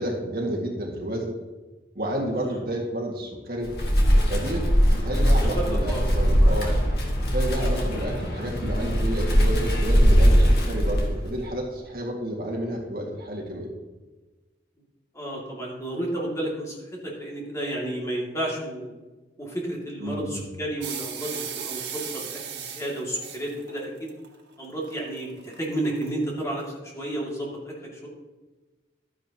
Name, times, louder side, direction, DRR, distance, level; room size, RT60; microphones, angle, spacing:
voice 1, 0.0-1.3 2.0-3.7 4.3-6.7 7.3-13.7 20.0-20.4, right 1 dB, 55° right, -1 dB, 1.9 m, -30 dB
Wind, 3.6-11.4, equal, 60° left, 1.7 m, -21 dB
voice 2, 5.5-6.1 6.4-6.8 7.6-7.8 15.1-18.9 19.4-24.1 24.6-28.1, right 1 dB, 15° left, -3 dB, 2.3 m, -32 dB
sound 1, 20.8-26.1, right 8 dB, 85° right, 1.7 m, -36 dB
12.5 x 9.8 x 2.9 m, 1.2 s
head